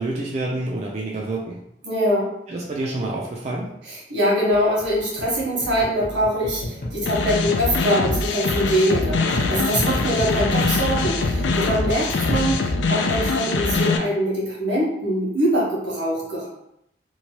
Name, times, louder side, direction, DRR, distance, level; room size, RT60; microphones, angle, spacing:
voice 1, 0.0-1.6 2.5-3.7, right 2 dB, 35° right, -3 dB, 0.4 m, -28 dB
voice 2, 1.8-2.3 3.8-12.6 12.9-16.5, equal, 85° right, -5 dB, 1.3 m, -23 dB
sound 1, 4.5-12.6, equal, 50° left, 0.7 m, -30 dB
sound 2, 7.1-14.0, left 3 dB, 85° left, 0.4 m, -23 dB
3.0 x 2.2 x 2.8 m, 0.77 s
head